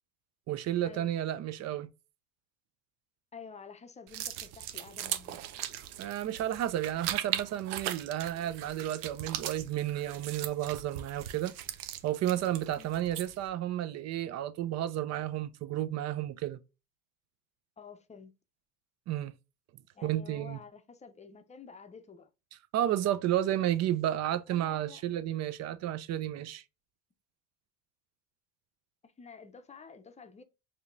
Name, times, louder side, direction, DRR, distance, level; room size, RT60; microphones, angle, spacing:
voice 1, 0.5-1.9 6.0-11.5 12.0-16.6 19.1-19.3 20.0-20.6 22.7-26.6, right 12 dB, 40° right, 0.5 m, -32 dB
voice 2, 3.3-5.4 12.8-12.9 17.8-18.3 19.9-22.3 24.5-25.0 29.0-30.4, left 5 dB, 15° left, 0.6 m, -50 dB
sound 1, 4.1-13.5, right 12 dB, 85° right, 0.7 m, -39 dB
4.9 x 2.8 x 2.6 m
supercardioid pair, 105°, 43 cm